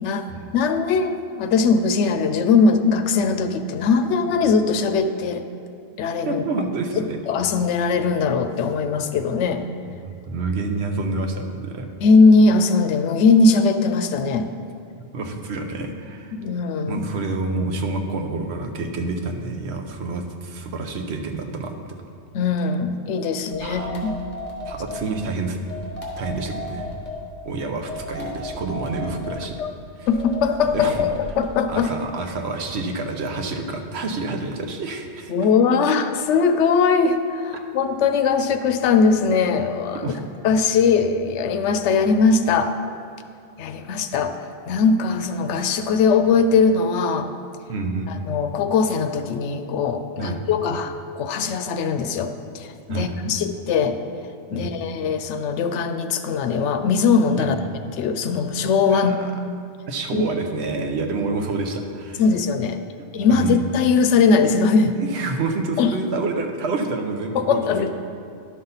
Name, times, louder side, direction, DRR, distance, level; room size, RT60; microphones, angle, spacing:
voice 1, 0.5-5.4 6.0-6.4 7.0-9.6 12.0-14.5 16.3-17.1 22.3-24.1 29.6-29.7 30.1-31.9 35.3-40.0 40.4-42.8 43.6-44.4 44.7-47.3 48.1-54.0 54.5-57.6 57.9-59.2 60.1-60.3 62.2-62.8 63.1-65.0 65.8-65.9 67.3-67.9, left 4 dB, 90° left, 8 dB, 0.9 m, -20 dB
voice 2, 6.2-7.2 9.9-11.9 15.0-16.4 16.9-21.8 23.6-24.1 24.7-25.6 26.2-26.9 27.4-29.6 30.0-30.1 30.7-31.1 31.7-35.3 40.0-40.2 47.7-48.2 50.2-50.4 52.9-53.1 54.5-54.8 57.4-57.5 58.9-59.3 59.9-62.2 63.3-63.6 64.9-67.6, right 3 dB, 70° right, 4 dB, 1.0 m, -28 dB
sound 1, 23.5-25.1 25.7-27.2 27.9-29.4 30.1-31.6, left 2 dB, 40° left, 1.5 m, -34 dB
11.5 x 5.5 x 4.0 m, 2.4 s
omnidirectional pair, 1.2 m